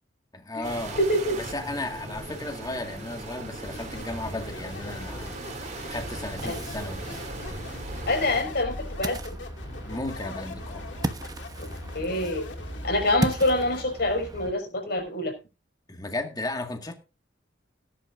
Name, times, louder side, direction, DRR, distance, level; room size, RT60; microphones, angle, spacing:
voice 1, 0.3-1.0 1.3-5.4 5.9-7.2 9.9-10.9 15.9-17.0, left 2 dB, 20° left, 2.0 m, -34 dB
sound 1, 0.6-8.4, right 2 dB, 40° right, 2.7 m, -39 dB
voice 2, 1.0-1.4 6.4-6.6 8.1-9.2 11.9-12.4 12.8-15.3, left 1 dB, 60° left, 5.5 m, -25 dB
sound 2, 3.6-13.8, left 1 dB, 75° left, 2.4 m, -40 dB
Ocean, 6.4-14.5, right 1 dB, 20° right, 1.1 m, -36 dB
18.5 x 11.0 x 2.6 m
head